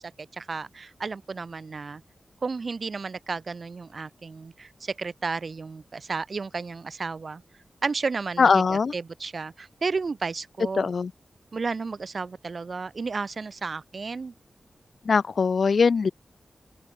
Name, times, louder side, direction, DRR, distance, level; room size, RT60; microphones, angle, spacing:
voice 1, 0.2-2.0 2.4-7.4 7.8-10.9 11.5-14.3, right 4 dB, 60° right, 3.1 m, -32 dB
voice 2, 8.4-8.9 10.8-11.1 15.1-16.1, left 5 dB, 70° left, 0.9 m, -21 dB
open air
wide cardioid pair, 75°, 0 cm